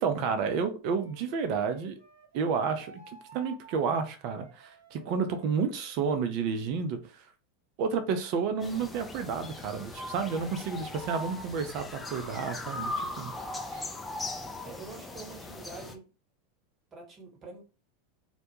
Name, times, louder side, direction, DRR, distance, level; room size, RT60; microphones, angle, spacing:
voice 1, 0.0-2.0 2.3-3.0 3.3-7.2 7.8-11.8 12.1-13.3 13.7-13.9, right 5 dB, 50° right, 0.5 m, -31 dB
Wind instrument woodwind instrument, 0.9-6.2, right 4 dB, 80° right, 0.9 m, -54 dB
sound 1, 8.6-16.0, left 2 dB, 15° left, 0.4 m, -39 dB
voice 2, 14.6-16.0 16.9-17.6, right 3 dB, 25° right, 1.0 m, -45 dB
2.2 x 2.1 x 2.9 m
figure-of-eight pair, 85°, 0 cm